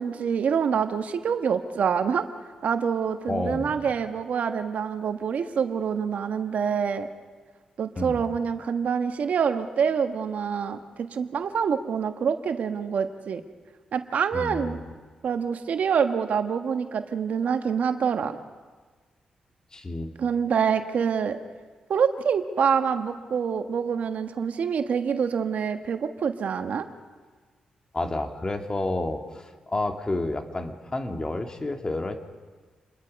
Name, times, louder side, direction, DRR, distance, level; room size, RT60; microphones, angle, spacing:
voice 1, 0.0-2.2 2.6-7.1 7.8-13.4 13.9-14.8 15.2-18.4 20.2-21.4 21.9-26.8, right 7 dB, 70° right, 7 dB, 1.4 m, -26 dB
voice 2, 3.3-3.7 8.0-8.2 14.3-14.9 19.7-20.1 27.9-32.2, left 2 dB, 30° left, 5 dB, 2.2 m, -30 dB
28.5 x 21.5 x 5.4 m, 1.4 s
cardioid pair, 65°, 3 cm